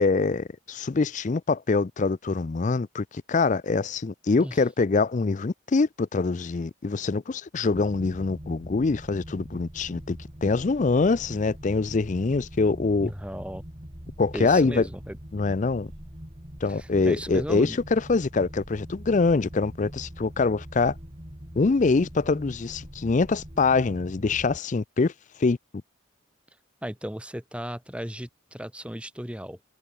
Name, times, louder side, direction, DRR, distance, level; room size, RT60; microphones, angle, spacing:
voice 1, 0.0-13.1 14.2-14.9 15.3-15.9 16.6-20.9 21.6-25.1 25.4-25.6, left 4 dB, 35° left, 0.4 m, -24 dB
sound 1, 7.7-24.6, equal, 30° right, 3.4 m, -43 dB
voice 2, 13.0-13.6 14.3-15.2 16.7-17.8 26.8-29.6, equal, 5° right, 4.1 m, -35 dB
head